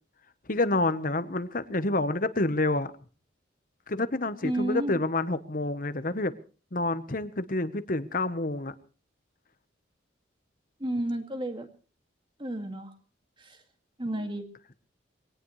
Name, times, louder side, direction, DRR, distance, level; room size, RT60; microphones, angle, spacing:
voice 1, 0.5-2.9 3.9-6.3 6.7-8.7, left 2 dB, 45° left, 12 dB, 1.1 m, -28 dB
voice 2, 4.4-5.0 10.8-11.7 12.4-12.9 13.4-13.6 14.0-14.4, right 1 dB, 25° right, 6 dB, 2.2 m, -31 dB
23.0 x 18.0 x 3.2 m, 0.37 s
head